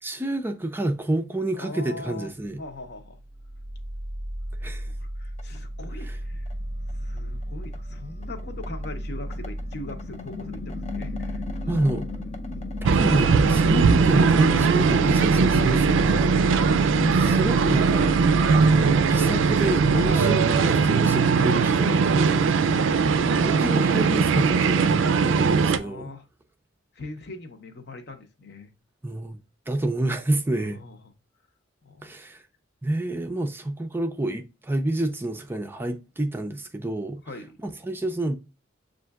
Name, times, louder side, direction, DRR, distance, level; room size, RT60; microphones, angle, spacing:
voice 1, 0.0-2.6 4.6-4.9 6.0-6.2 11.7-12.0 12.8-16.5 17.0-18.2 18.5-22.7 23.3-26.1 29.0-29.4 29.7-30.8 32.0-32.4 32.8-37.2 37.6-38.4, right 1 dB, 10° right, 0.4 m, -28 dB
voice 2, 1.6-2.3 2.6-3.2 5.0-6.5 7.0-12.0 12.5-12.7 16.5-16.8 20.0-20.3 22.6-22.9 25.2-26.3 26.9-28.7 30.6-31.1 31.8-32.1 37.3-37.6, left 2 dB, 60° left, 0.8 m, -41 dB
sound 1, 2.9-20.1, equal, 35° left, 0.5 m, -33 dB
sound 2, 12.8-25.8, right 5 dB, 75° right, 0.4 m, -20 dB
7.4 x 2.5 x 2.3 m
head